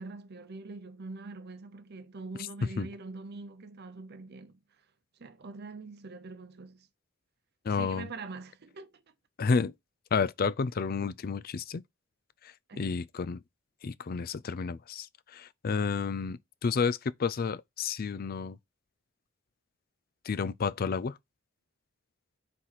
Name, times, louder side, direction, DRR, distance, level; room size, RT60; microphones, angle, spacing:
voice 1, 0.0-4.6 5.2-6.9 7.7-9.0 12.7-12.9, right 3 dB, 55° right, 0.8 m, -44 dB
voice 2, 7.7-8.1 9.4-9.7 10.1-11.8 12.8-13.4 13.8-15.1 15.3-18.6 20.3-21.1, left 5 dB, 45° left, 0.4 m, -30 dB
4.8 x 4.2 x 5.6 m
head